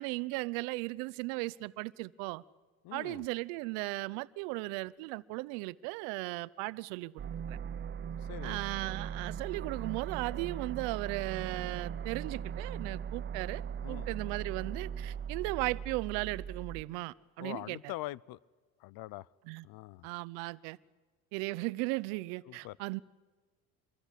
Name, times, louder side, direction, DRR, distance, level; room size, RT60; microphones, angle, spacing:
voice 1, 0.0-2.4 2.9-7.6 8.4-17.8 19.5-19.6 20.0-20.8 21.3-23.0, right 22 dB, 70° right, 0.9 m, -37 dB
voice 2, 2.8-3.2 8.2-8.6 13.8-14.1 17.4-18.4 18.8-19.3 19.6-20.1 22.4-22.8, left 17 dB, 55° left, 0.8 m, -43 dB
sound 1, 7.2-16.8, right 7 dB, 25° right, 0.7 m, -39 dB
26.0 x 23.0 x 8.4 m
supercardioid pair, 100°, 42 cm